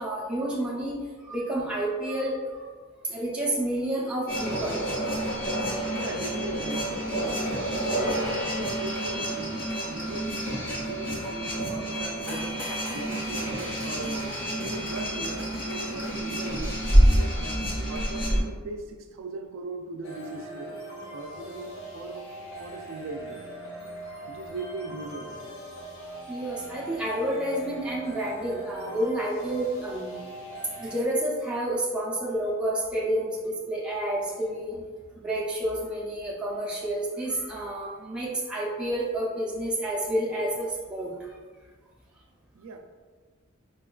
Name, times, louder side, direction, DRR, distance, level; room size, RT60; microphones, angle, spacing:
voice 1, 0.0-2.7 3.0-4.9 26.3-30.2 30.8-34.8 35.2-41.3, right 1 dB, 5° right, -6 dB, 0.4 m, -29 dB
sound 1, 4.3-18.4, equal, 40° left, 0.7 m, -27 dB
voice 2, 5.9-10.3 10.7-14.2 14.5-20.8 21.1-22.3 22.6-23.5 24.3-25.5 42.5-42.8, right 3 dB, 70° right, 5 dB, 0.3 m, -39 dB
sound 2, 20.0-31.0, right 1 dB, 75° left, 0.7 m, -41 dB
4.3 x 2.3 x 2.2 m, 1.5 s
head